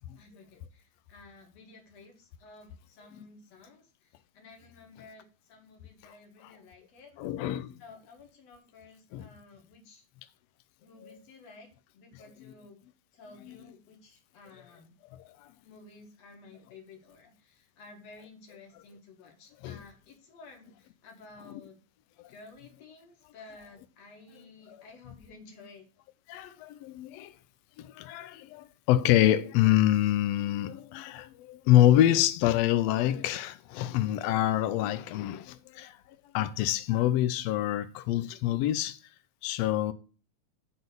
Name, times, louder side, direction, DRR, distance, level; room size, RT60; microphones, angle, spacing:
voice 1, 0.0-7.1 7.8-10.0 10.8-12.8 13.1-14.9 15.6-21.8 22.3-25.9, left 3 dB, 60° left, 2.8 m, -53 dB
voice 2, 7.2-7.8 9.1-9.3 11.0-11.2 19.6-19.8 21.5-21.6 24.7-24.8 26.3-27.3 27.8-35.9 36.3-39.0 39.4-39.9, left 13 dB, 85° left, 1.5 m, -26 dB
7.9 x 3.8 x 6.8 m
omnidirectional pair, 3.4 m